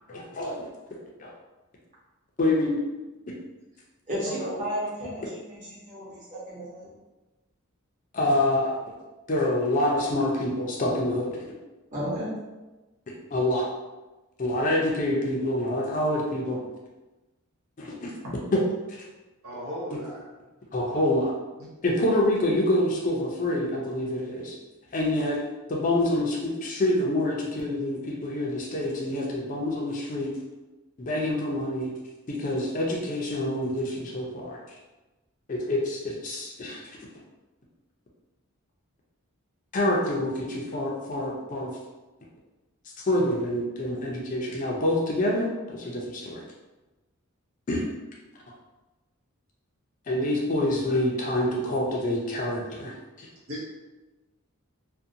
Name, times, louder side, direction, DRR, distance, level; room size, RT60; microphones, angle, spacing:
voice 1, 0.1-0.7 1.2-1.3 2.4-2.8 4.3-4.5 8.1-8.7 9.3-11.4 13.3-13.7 14.4-16.6 17.8-18.1 18.5-18.6 18.9-19.0 20.7-21.3 21.8-24.6 24.9-25.4 25.7-30.3 31.0-31.9 32.3-34.6 35.5-36.8 39.7-41.7 43.1-46.4 47.7-47.8 50.1-53.3, left 1 dB, 35° left, -2 dB, 0.4 m, -26 dB
voice 2, 4.1-5.2 5.5-6.9 11.9-12.3, equal, 35° right, -9 dB, 1.1 m, -33 dB
voice 3, 19.4-20.3 20.9-21.0 24.9-25.0 26.1-26.2 53.5-53.7, equal, 85° right, -6 dB, 0.9 m, -36 dB
2.5 x 2.1 x 2.6 m, 1.1 s
head